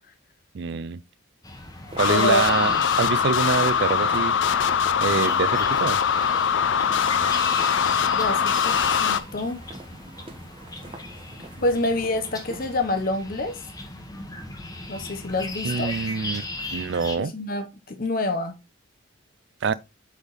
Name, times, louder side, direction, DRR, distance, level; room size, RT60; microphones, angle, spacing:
voice 1, 0.5-1.0 1.9-4.3 5.0-6.0 15.6-17.3 19.6-19.7, right 5 dB, 55° right, 0.4 m, -25 dB
sound 1, 1.4-17.2, left 2 dB, 20° left, 1.1 m, -37 dB
sound 2, 1.9-12.7, right 2 dB, 25° right, 1.2 m, -46 dB
sound 3, 2.0-9.2, left 7 dB, 60° left, 0.4 m, -22 dB
voice 2, 2.1-2.4 2.7-2.8 8.1-9.6 11.6-13.6 14.9-15.9 17.2-18.6, left 2 dB, 45° left, 0.8 m, -27 dB
8.2 x 3.6 x 4.0 m
head